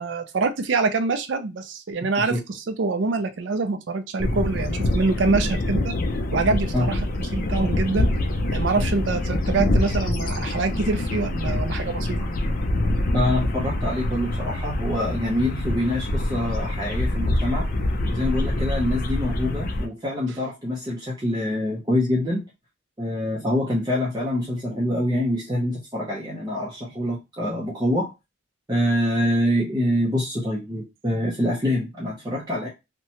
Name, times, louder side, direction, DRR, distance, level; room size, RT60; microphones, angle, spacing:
voice 1, 0.0-5.9 6.3-8.1 8.5-12.3, right 3 dB, 70° right, 8 dB, 0.4 m, -25 dB
sound 1, 4.2-19.9, left 1 dB, 45° left, 0.4 m, -25 dB
voice 2, 13.1-17.7 18.1-22.4 23.0-28.1 28.7-32.7, left 1 dB, 20° right, -5 dB, 0.6 m, -25 dB
2.7 x 2.2 x 2.8 m, 0.24 s
head